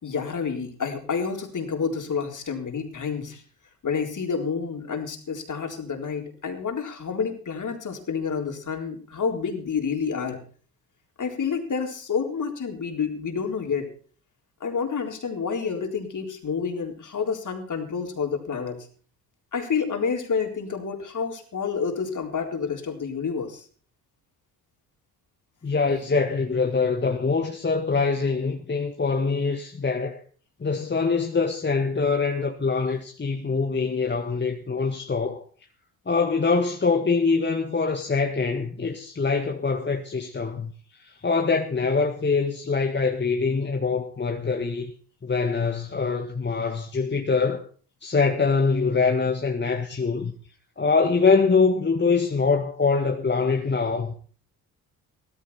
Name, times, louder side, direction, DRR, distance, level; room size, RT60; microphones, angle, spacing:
voice 1, 0.0-3.4 3.8-10.4 11.2-13.9 14.6-18.9 19.5-23.7, left 6 dB, 40° left, 4.0 m, -29 dB
voice 2, 25.6-30.2 30.6-35.4 36.1-40.7 41.0-44.9 45.2-47.7 48.0-50.3 50.8-54.2, left 4 dB, 25° left, 1.8 m, -24 dB
16.5 x 14.5 x 4.3 m
figure-of-eight pair, 45°, 44 cm